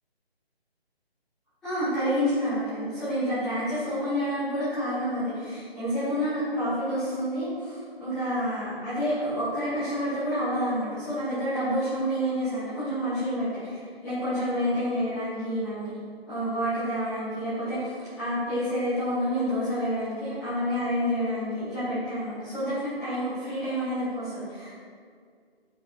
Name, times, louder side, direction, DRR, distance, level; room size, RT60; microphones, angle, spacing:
voice 1, 1.6-15.9 16.3-24.8, equal, ahead, -22 dB, 1.7 m, -29 dB
8.1 x 7.3 x 2.7 m, 2.1 s
hypercardioid pair, 180°, 31 cm